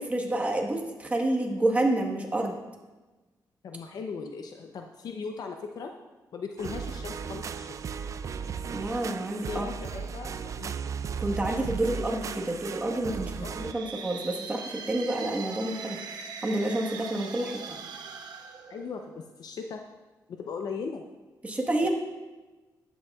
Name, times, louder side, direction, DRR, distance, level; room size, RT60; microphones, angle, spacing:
voice 1, 0.0-2.6 8.7-9.7 11.2-16.0 16.4-17.8 21.4-21.9, right 1 dB, 20° right, 1 dB, 1.4 m, -29 dB
voice 2, 3.6-5.9 6.3-7.7 9.5-10.8 13.4-13.6 18.7-19.8 20.3-21.0 21.8-21.9, left 5 dB, 65° left, 4 dB, 0.6 m, -38 dB
sound 1, 6.6-13.7, right 6 dB, 50° right, 0.3 m, -36 dB
sound 2, 13.4-19.3, right 5 dB, 85° right, 0.8 m, -41 dB
11.5 x 9.2 x 2.4 m, 1.2 s
cardioid pair, 105°, 7 cm